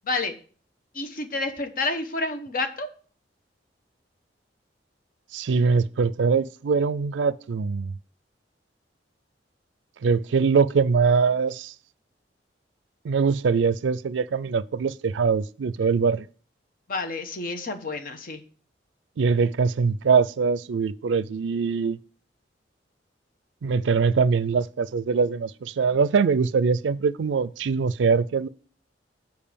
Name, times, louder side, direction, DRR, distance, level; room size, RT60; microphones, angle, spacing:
voice 1, 0.9-2.9 16.9-18.4, left 3 dB, 50° left, 1.0 m, -29 dB
voice 2, 5.3-7.9 10.0-11.7 13.0-16.3 19.2-22.0 23.6-28.5, right 5 dB, 85° right, 0.4 m, -22 dB
7.4 x 4.7 x 6.9 m
head